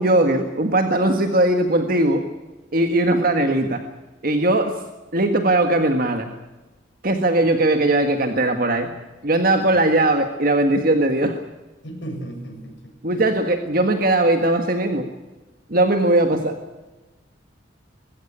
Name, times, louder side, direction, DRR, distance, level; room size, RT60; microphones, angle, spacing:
voice 1, 0.0-2.3 2.7-3.8 4.2-4.8 5.1-6.3 7.0-8.9 9.2-11.4 13.0-15.1 15.7-16.5, right 1 dB, 50° right, 6 dB, 1.7 m, -19 dB
voice 2, 9.5-10.0 11.8-13.2, right 1 dB, 70° left, 2 dB, 7.7 m, -36 dB
22.5 x 16.0 x 10.0 m, 1.1 s
head